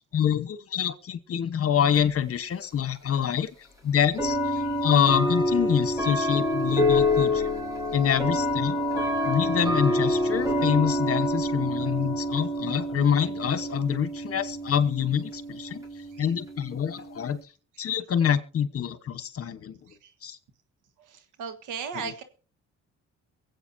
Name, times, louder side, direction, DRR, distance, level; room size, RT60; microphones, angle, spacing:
voice 1, 0.1-7.5 7.9-8.8 9.2-15.8 16.2-17.4 17.8-19.8 20.2-20.4 21.9-22.1, left 8 dB, 50° left, 13 dB, 1.2 m, -26 dB
sound 1, 1.9-2.0 3.1-3.2 4.2-17.4, left 1 dB, 10° right, 4.1 m, -27 dB
voice 2, 21.1-22.2, right 6 dB, 90° right, 10 dB, 1.6 m, -36 dB
23.5 x 8.2 x 2.7 m, 0.38 s
cardioid pair, 90°, 30 cm